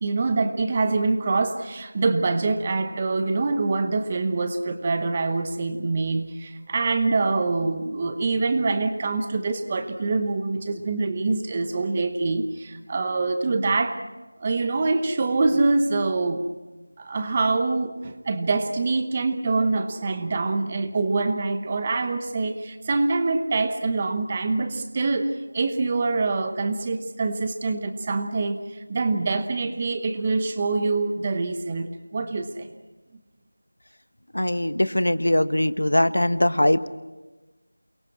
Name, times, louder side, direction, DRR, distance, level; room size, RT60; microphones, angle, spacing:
voice 1, 0.0-14.0 14.4-16.4 17.0-32.7, right 3 dB, 15° right, 8 dB, 1.0 m, -25 dB
voice 2, 34.3-36.9, left 1 dB, 80° left, 13 dB, 1.3 m, -21 dB
29.0 x 22.5 x 6.3 m, 1.2 s
figure-of-eight pair, 175°, 0 cm